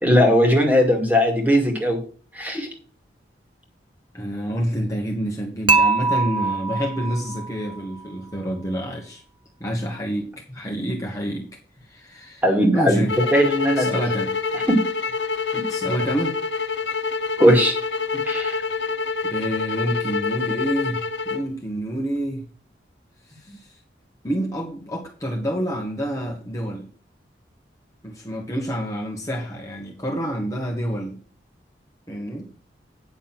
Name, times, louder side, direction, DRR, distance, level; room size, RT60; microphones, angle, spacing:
voice 1, 0.0-2.0 2.3-2.7 12.4-13.0 13.3-13.9 14.5-14.8 15.5-15.6 17.4-17.7 18.3-18.6, equal, 10° right, 3 dB, 2.2 m, -18 dB
voice 2, 4.1-9.2 9.6-11.5 11.8-12.4 12.7-13.2 13.8-14.4 15.7-16.4 19.2-21.0 21.3-22.4 23.3-23.7 24.2-26.9 28.0-31.2 32.1-32.5, equal, 20° left, 0 dB, 1.5 m, -28 dB
Dishes pots and pans / Chink clink, 5.7-7.8, right 4 dB, 30° right, 1.0 m, -22 dB
sound 1, 13.1-21.5, left 4 dB, 80° left, 0.8 m, -26 dB
9.4 x 6.4 x 6.0 m, 0.39 s
head